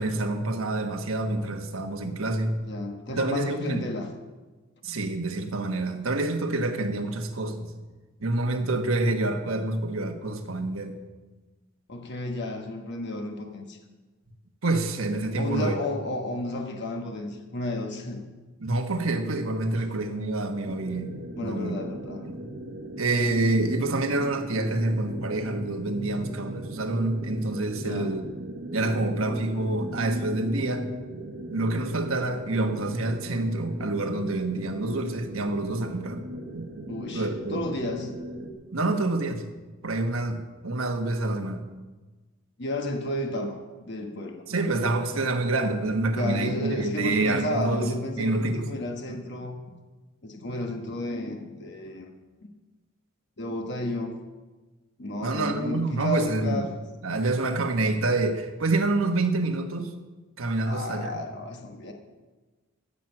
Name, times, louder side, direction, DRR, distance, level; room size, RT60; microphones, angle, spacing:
voice 1, 0.0-2.6 3.1-3.8 4.8-7.7 8.2-11.0 14.6-15.8 18.6-21.1 21.4-21.8 22.2-22.4 23.0-28.3 28.7-30.9 31.5-36.2 36.5-36.7 37.1-37.7 38.7-39.4 39.8-41.7 44.5-47.9 48.2-48.7 55.2-56.7 57.0-59.9 60.4-61.2, right 2 dB, 75° right, 5 dB, 1.3 m, -27 dB
voice 2, 2.6-4.1 11.9-13.8 15.4-18.2 21.3-22.3 27.8-28.2 36.9-38.1 42.6-43.6 43.9-44.5 46.1-49.6 50.2-52.1 53.4-54.1 55.0-56.7 60.6-61.9, left 1 dB, 55° left, 3 dB, 1.2 m, -32 dB
sound 1, 20.7-38.5, right 1 dB, 50° right, 1.1 m, -38 dB
14.5 x 7.6 x 6.0 m, 1.2 s
head